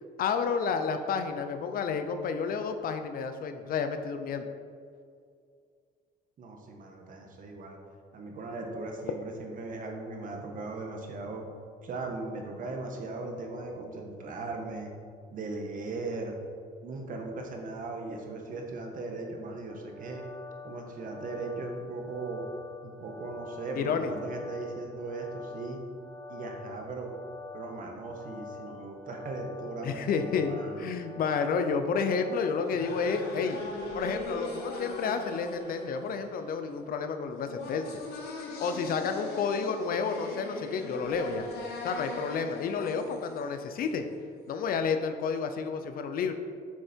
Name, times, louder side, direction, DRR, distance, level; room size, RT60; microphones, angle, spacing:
voice 1, 0.2-4.5 23.7-24.1 29.8-33.6 33.9-37.9 38.6-41.5 41.8-44.1 44.5-46.4, left 5 dB, 60° left, 8 dB, 0.8 m, -30 dB
voice 2, 6.4-7.8 8.1-11.4 11.8-14.9 15.3-16.4 16.8-20.2 20.6-22.4 22.8-25.8 26.3-27.1 27.5-30.9, right 3 dB, 55° right, 2 dB, 1.5 m, -38 dB
sound 1, 19.7-32.6, left 4 dB, 5° left, 1.2 m, -46 dB
sound 2, 32.3-44.2, left 2 dB, 75° left, 1.5 m, -40 dB
8.1 x 6.6 x 4.6 m, 2.2 s
cardioid pair, 110°, 17 cm